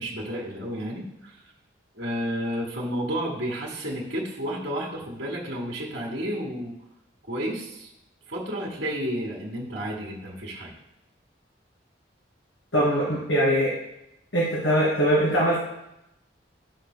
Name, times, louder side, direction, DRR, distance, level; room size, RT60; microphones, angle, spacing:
voice 1, 0.0-1.4 1.9-6.7 7.3-7.9 8.3-10.7, equal, 65° right, -5 dB, 1.7 m, -31 dB
voice 2, 12.7-13.7 14.3-15.6, equal, 90° left, -6 dB, 2.3 m, -22 dB
11.5 x 6.6 x 2.2 m, 0.85 s
head